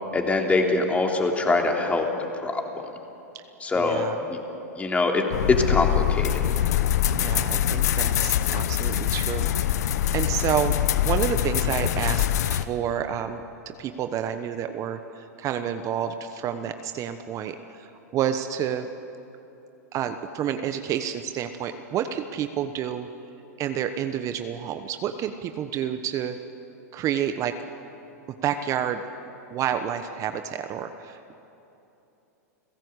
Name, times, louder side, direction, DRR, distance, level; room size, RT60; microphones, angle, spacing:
voice 1, 0.1-2.1 2.4-2.6 3.6-4.4 4.8-6.3, left 3 dB, 15° left, 2 dB, 3.2 m, -23 dB
voice 2, 3.7-4.2 7.1-9.8 10.1-18.9 19.9-23.1 23.6-26.4 26.9-27.5 28.4-29.0 29.5-31.3, right 9 dB, 35° right, 8 dB, 1.1 m, -29 dB
sound 1, 5.3-12.6, left 11 dB, 70° left, 1.0 m, -24 dB
30.0 x 17.0 x 8.2 m, 2.9 s
hypercardioid pair, 110°, 9 cm